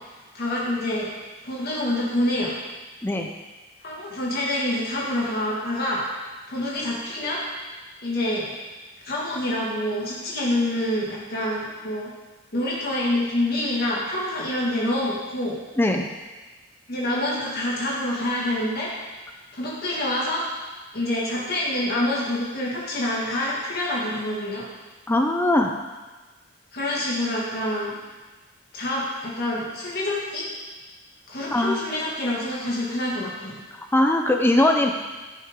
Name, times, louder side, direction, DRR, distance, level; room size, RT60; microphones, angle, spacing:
voice 1, 0.3-1.1 1.4-2.5 3.8-6.0 6.5-7.4 8.0-8.5 9.0-12.1 12.5-15.6 16.9-18.9 19.5-20.5 20.9-24.7 26.7-28.0 28.7-30.5 31.3-33.6, left 1 dB, 55° left, -5 dB, 1.9 m, -26 dB
voice 2, 15.8-16.1 25.1-25.7 31.5-31.8 33.9-34.9, left 1 dB, 10° left, 3 dB, 0.5 m, -20 dB
14.0 x 6.2 x 3.7 m, 1.3 s
head